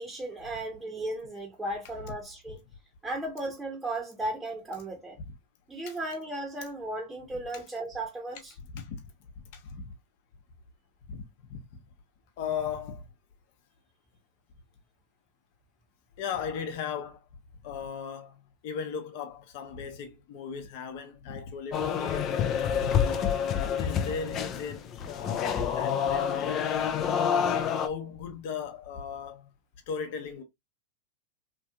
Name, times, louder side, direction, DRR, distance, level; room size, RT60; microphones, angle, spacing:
voice 1, 0.0-2.6 3.0-5.2 5.7-8.5, right 1 dB, 10° right, 1.0 m, -35 dB
voice 2, 8.6-9.0 9.4-9.9 11.1-11.2 11.5-11.6 12.4-13.1 16.2-17.3 17.6-23.4 23.7-26.8 27.5-29.5 29.9-30.4, left 6 dB, 60° left, 0.9 m, -37 dB
sound 1, 21.7-27.9, left 8 dB, 40° left, 0.5 m, -28 dB
3.1 x 2.7 x 2.3 m
hypercardioid pair, 105°, 0 cm